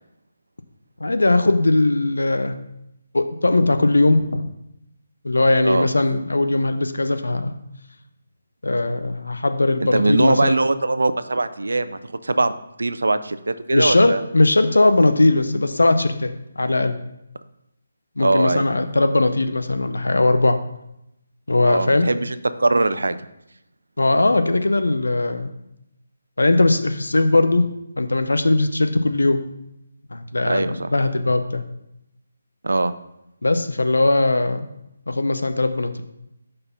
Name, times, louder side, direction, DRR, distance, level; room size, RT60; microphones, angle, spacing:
voice 1, 1.0-2.5 3.1-4.4 5.2-7.6 8.6-10.5 13.7-17.0 18.2-20.6 21.5-22.1 24.0-25.5 26.4-27.7 28.0-29.4 30.1-31.6 33.4-34.7 35.1-36.0, left 2 dB, 80° left, 8 dB, 0.6 m, -19 dB
voice 2, 9.8-14.2 18.2-18.6 21.6-23.2 30.4-30.9 32.6-32.9, right 2 dB, 75° right, 12 dB, 0.4 m, -21 dB
5.4 x 4.2 x 5.6 m, 0.83 s
figure-of-eight pair, 150°, 0 cm